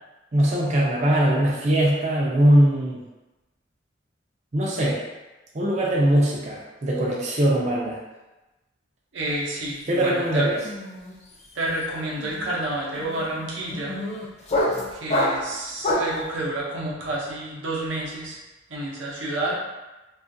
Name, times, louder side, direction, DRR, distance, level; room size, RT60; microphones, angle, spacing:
voice 1, 0.3-3.0 4.5-5.0 5.5-8.0 9.9-10.6, right 1 dB, 40° right, -4 dB, 0.4 m, -21 dB
voice 2, 9.1-10.6 11.5-14.0 14.9-18.4 18.7-19.6, right 1 dB, 90° right, -4 dB, 0.6 m, -29 dB
sound 1, 9.4-9.7 10.0-16.2, left 1 dB, 35° left, 0.4 m, -28 dB
2.6 x 2.4 x 2.5 m, 1.1 s
head